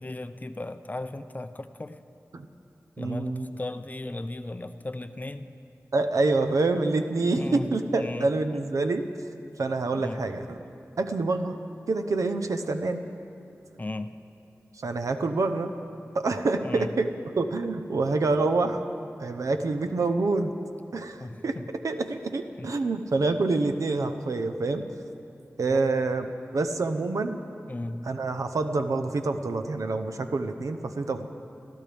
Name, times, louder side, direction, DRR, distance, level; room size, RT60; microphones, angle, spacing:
voice 1, 0.0-2.0 3.0-5.5 7.4-8.6 9.9-10.2 13.8-14.2 16.6-16.9 21.2-21.7 22.6-22.7 25.7-25.8 27.7-28.1, left 2 dB, 30° left, 9 dB, 0.6 m, -36 dB
voice 2, 3.0-3.6 5.9-9.0 9.6-10.6 11.0-11.6 11.9-13.1 14.8-15.7 16.1-18.8 19.2-20.5 20.9-21.6 21.8-24.8 25.6-27.4 28.1-31.3, right 3 dB, 85° right, 8 dB, 0.8 m, -27 dB
26.5 x 14.5 x 3.5 m, 2.7 s
wide cardioid pair, 85°, 5 cm